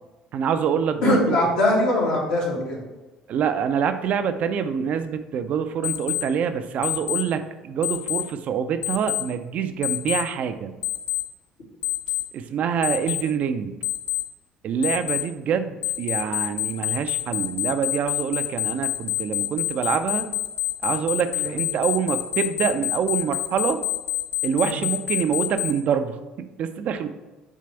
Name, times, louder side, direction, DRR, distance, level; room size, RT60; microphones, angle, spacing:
voice 1, 0.3-1.4 3.3-10.7 12.3-13.8 14.6-20.2 20.8-23.8 24.4-27.1, right 7 dB, 50° right, 8 dB, 0.5 m, -26 dB
voice 2, 1.0-2.8 21.3-21.5 24.5-24.8, left 1 dB, 70° left, -5 dB, 2.3 m, -22 dB
Alarm, 5.8-6.2 6.8-7.2 7.8-8.2 8.8-9.2 9.8-10.2 10.8-11.2 11.8-12.2 12.8-13.2 13.8-14.2 14.8-15.2 15.8-25.7, left 18 dB, 55° left, 0.7 m, -26 dB
6.3 x 3.3 x 5.7 m, 1.1 s
figure-of-eight pair, 55°, 3 cm